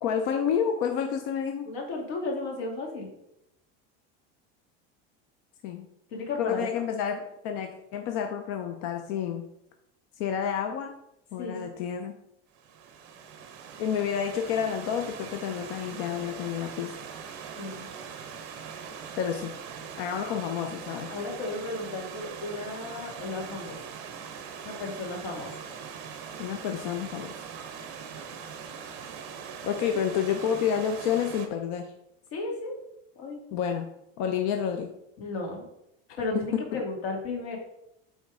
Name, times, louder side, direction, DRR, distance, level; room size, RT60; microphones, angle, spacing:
voice 1, 0.0-1.7 5.6-5.9 6.4-9.5 10.2-10.9 11.3-12.1 13.8-16.9 19.2-19.5 20.0-21.1 26.4-27.4 29.6-31.9 33.5-33.9 34.2-34.9 36.5-36.8, left 8 dB, 55° left, 5 dB, 0.6 m, -29 dB
voice 2, 1.7-3.1 6.1-6.8 11.4-11.7 17.6-17.9 21.1-23.8 24.6-25.6 32.3-32.8 33.2-33.4 35.2-35.7 36.2-37.6, left 2 dB, 85° left, 1 dB, 2.3 m, -34 dB
Stream / Liquid, 12.5-31.5, right 6 dB, 50° right, 1.1 m, -41 dB
8.2 x 3.6 x 4.9 m, 0.81 s
cardioid pair, 180°, 31 cm